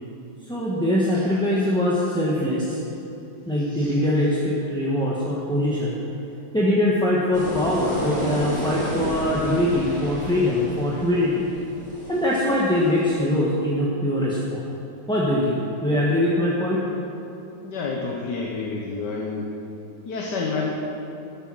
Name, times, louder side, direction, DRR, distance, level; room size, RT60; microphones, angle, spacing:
voice 1, 0.4-2.8 3.5-5.9 6.5-11.5 12.1-14.7 15.1-16.9, left 1 dB, 5° left, -6 dB, 1.2 m, -22 dB
sound 1, 7.3-13.4, equal, 55° left, 3.8 m, -32 dB
voice 2, 17.6-19.5 20.0-20.7, left 4 dB, 75° left, -1 dB, 1.8 m, -28 dB
13.0 x 9.4 x 6.3 m, 2.9 s
omnidirectional pair, 1.8 m